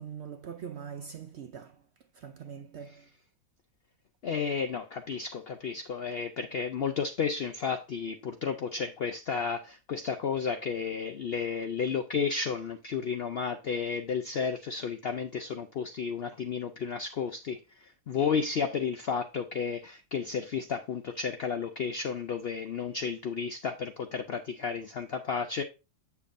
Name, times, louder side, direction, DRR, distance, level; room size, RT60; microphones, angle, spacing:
voice 1, 0.0-1.8 2.2-3.0, right 7 dB, 65° right, 0.7 m, -42 dB
voice 2, 4.2-25.6, left 6 dB, 70° left, 0.5 m, -32 dB
8.3 x 6.8 x 2.5 m
omnidirectional pair, 1.6 m